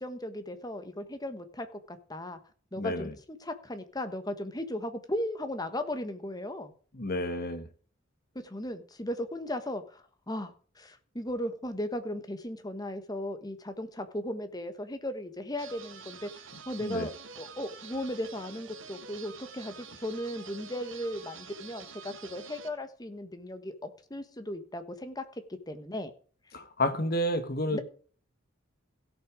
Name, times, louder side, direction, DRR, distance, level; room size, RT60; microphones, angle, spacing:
voice 1, 0.0-2.4 2.7-6.7 8.4-25.2 25.7-26.1 27.7-27.8, left 1 dB, 20° left, 1.3 m, -36 dB
voice 2, 2.8-3.1 6.9-7.7 16.8-17.1 26.5-27.8, left 1 dB, 50° left, 1.6 m, -30 dB
sound 1, 15.6-22.7, right 6 dB, 70° right, 1.6 m, -47 dB
16.5 x 6.0 x 4.9 m
head